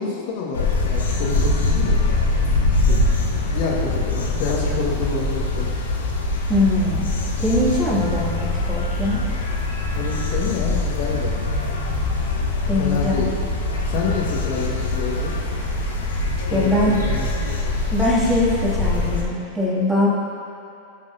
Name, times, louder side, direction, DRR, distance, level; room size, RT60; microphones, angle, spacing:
voice 1, 0.0-2.0 2.3-3.0 3.5-5.7 9.9-11.4 12.8-13.3 13.9-15.3 16.2-17.3, left 5 dB, 45° left, -2 dB, 1.6 m, -28 dB
sound 1, 0.5-19.2, left 2 dB, 65° left, 1.3 m, -23 dB
voice 2, 6.5-7.1 7.4-9.3 12.7-13.2 16.5-17.0 17.9-20.1, left 1 dB, 10° right, -7 dB, 2.4 m, -21 dB
17.0 x 7.3 x 2.8 m, 2.8 s
figure-of-eight pair, 90°, 0 cm